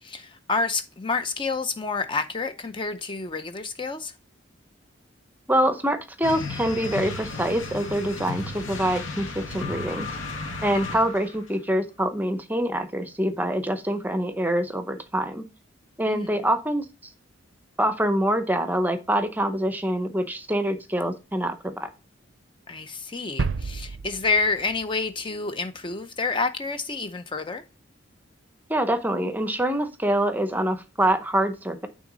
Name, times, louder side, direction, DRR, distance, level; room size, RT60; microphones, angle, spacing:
voice 1, 0.0-4.1 10.7-11.0 16.1-16.3 22.7-27.6, left 4 dB, 25° left, 0.6 m, -29 dB
voice 2, 5.5-10.1 10.6-15.5 16.0-16.8 17.8-21.9 28.7-31.9, right 1 dB, 10° right, 0.7 m, -25 dB
sound 1, 6.2-11.4, left 3 dB, 80° left, 1.9 m, -34 dB
sound 2, 23.4-25.2 25.5-25.6, right 4 dB, 70° right, 0.5 m, -31 dB
9.2 x 3.7 x 3.9 m
head